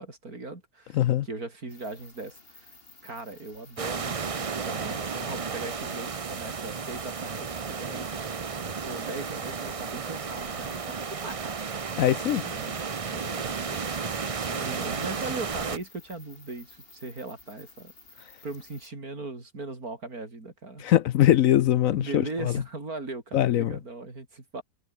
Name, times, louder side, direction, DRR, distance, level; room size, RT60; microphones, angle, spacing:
voice 1, 0.0-2.7 3.0-8.3 8.6-11.6 12.4-12.8 13.1-20.9 21.9-24.6, right 3 dB, 65° right, 5.1 m, -39 dB
sound 1, 1.7-18.9, left 3 dB, 35° left, 3.3 m, -54 dB
sound 2, 3.8-15.8, right 5 dB, 35° right, 0.5 m, -33 dB
voice 2, 12.0-12.4 20.8-22.5 23.3-23.7, left 12 dB, 70° left, 0.9 m, -22 dB
omnidirectional pair, 1.7 m